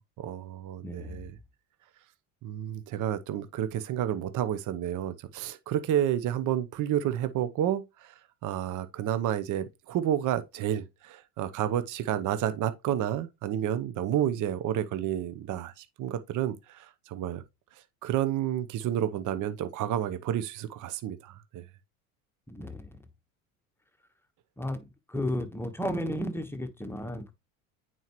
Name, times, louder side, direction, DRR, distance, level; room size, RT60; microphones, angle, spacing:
voice 1, 0.2-1.4 2.4-17.4 17.7-21.7, right 11 dB, 45° right, 0.9 m, -30 dB
voice 2, 0.8-1.3 22.5-23.0 24.6-27.3, left 1 dB, 5° left, 1.2 m, -34 dB
8.9 x 4.6 x 3.0 m
supercardioid pair, 95°, 43 cm